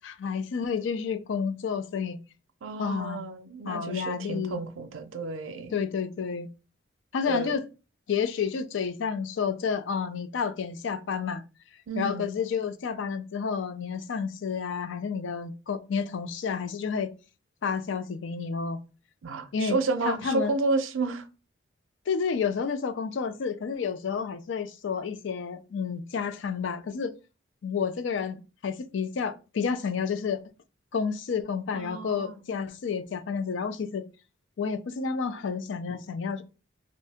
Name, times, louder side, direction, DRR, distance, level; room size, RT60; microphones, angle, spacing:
voice 1, 0.0-2.2 2.8-3.2 3.6-4.6 5.7-6.5 7.1-7.6 8.1-11.4 12.0-17.1 17.6-18.8 19.5-19.8 20.0-20.5 22.1-27.2 27.6-30.4 30.9-34.0 34.6-36.4, left 6 dB, 70° left, 0.4 m, -30 dB
voice 2, 2.6-5.7 7.3-7.6 11.9-12.3 19.2-21.3 31.7-32.4, right 3 dB, 85° right, 0.5 m, -31 dB
2.7 x 2.6 x 3.4 m
head